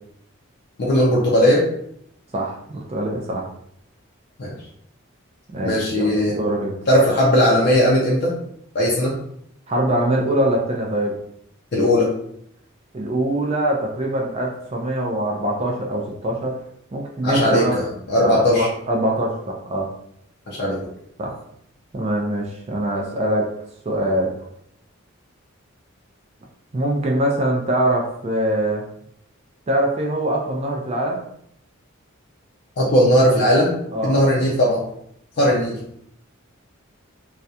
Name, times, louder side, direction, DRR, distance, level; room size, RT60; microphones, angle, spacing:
voice 1, 0.8-1.7 4.4-4.5 5.6-6.4 6.9-8.3 8.7-9.2 11.7-12.1 17.2-18.7 20.5-20.8 32.8-33.7 34.0-34.8 35.4-35.8, equal, 50° left, -4 dB, 0.4 m, -18 dB
voice 2, 2.3-3.5 5.5-6.8 9.7-11.2 12.9-16.6 16.9-17.7 18.2-19.9 21.2-21.3 21.9-23.5 23.9-24.3 26.7-28.8 29.7-31.2 33.9-34.5 35.4-35.5, right 1 dB, 30° right, -1 dB, 0.3 m, -23 dB
2.3 x 2.1 x 2.7 m, 0.71 s
head